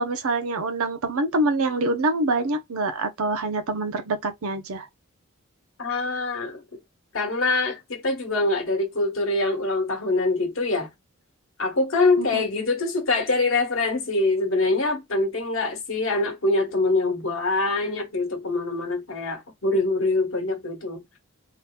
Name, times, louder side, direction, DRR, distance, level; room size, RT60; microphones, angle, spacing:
voice 1, 0.0-4.9 12.2-12.5, right 2 dB, 80° right, 0.6 m, -25 dB
voice 2, 5.8-6.6 7.1-10.9 11.6-21.2, left 2 dB, 65° left, 1.2 m, -24 dB
3.7 x 2.8 x 2.2 m
head